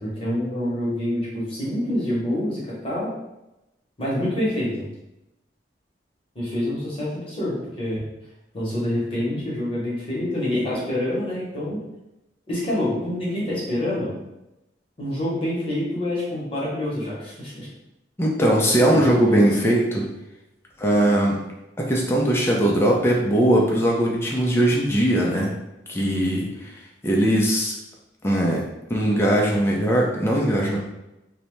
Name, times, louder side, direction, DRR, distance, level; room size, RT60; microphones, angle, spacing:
voice 1, 0.0-3.1 4.0-4.9 6.3-8.0 8.5-11.8 12.5-14.1 15.0-17.7 18.9-19.5, left 1 dB, 30° left, -7 dB, 0.9 m, -26 dB
voice 2, 18.2-20.1 20.8-21.4 21.8-25.5 25.9-26.7 27.0-27.8 28.2-28.6 28.9-30.8, right 1 dB, 15° left, -2 dB, 0.4 m, -20 dB
2.7 x 2.1 x 3.0 m, 0.93 s
head